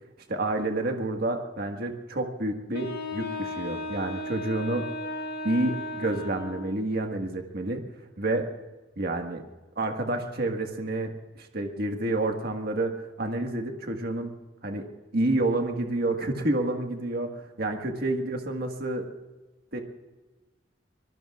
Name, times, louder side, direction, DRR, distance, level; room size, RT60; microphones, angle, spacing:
voice 1, 0.3-4.9 5.4-7.8 8.2-8.5 9.0-9.4 9.8-12.9 13.2-14.3 14.6-14.8 15.1-19.1 19.7-19.8, right 2 dB, 55° right, 3 dB, 1.7 m, -29 dB
Wind instrument woodwind instrument, 2.7-6.8, left 1 dB, 85° left, 3.0 m, -35 dB
25.5 x 22.0 x 2.5 m, 1.1 s
head